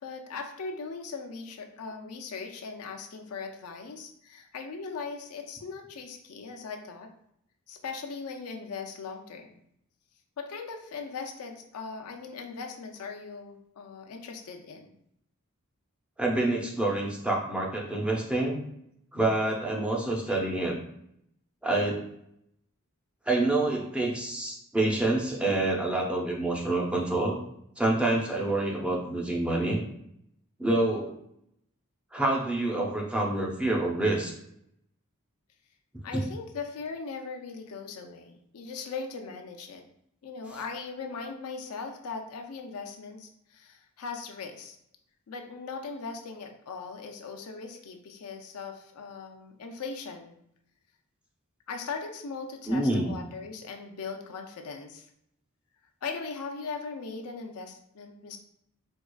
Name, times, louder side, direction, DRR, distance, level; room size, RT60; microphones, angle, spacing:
voice 1, 0.0-7.1 7.7-9.5 10.4-14.9 36.0-39.8 40.2-44.8 45.3-50.4 51.7-55.1 56.0-58.4, left 4 dB, 90° left, 4 dB, 0.5 m, -39 dB
voice 2, 16.2-18.6 19.1-20.8 21.6-22.0 23.3-27.4 27.8-29.8 30.6-31.2 32.1-34.3 36.1-36.2 52.7-53.2, right 2 dB, 5° right, -1 dB, 0.5 m, -27 dB
4.5 x 2.3 x 2.2 m, 0.74 s
head